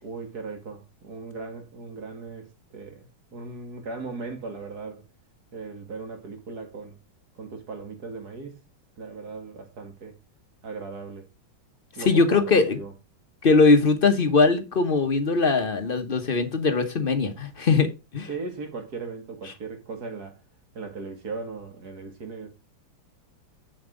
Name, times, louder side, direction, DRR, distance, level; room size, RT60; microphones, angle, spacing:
voice 1, 0.0-5.0 5.5-6.9 7.3-8.6 9.0-10.2 10.6-11.2 12.0-12.9 18.3-20.4 20.7-22.5, right 4 dB, 50° right, 2.5 m, -38 dB
voice 2, 12.0-12.8 13.4-18.3, left 4 dB, 40° left, 0.8 m, -21 dB
8.0 x 7.3 x 3.7 m
omnidirectional pair, 2.2 m